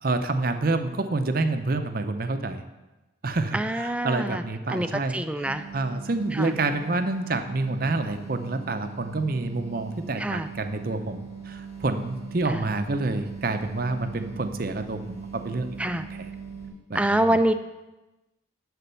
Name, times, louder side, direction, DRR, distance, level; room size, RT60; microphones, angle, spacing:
voice 1, 0.0-2.6 3.2-5.5 5.7-16.3 16.9-17.4, right 2 dB, 50° right, 7 dB, 0.6 m, -28 dB
voice 2, 3.5-4.4 4.7-5.6 6.4-6.5 10.2-10.5 12.5-12.6 15.8-16.0 16.9-17.5, right 1 dB, 5° right, 9 dB, 0.3 m, -25 dB
sound 1, 5.4-16.7, right 6 dB, 35° left, 3.7 m, -41 dB
11.0 x 4.2 x 6.8 m, 1.1 s
head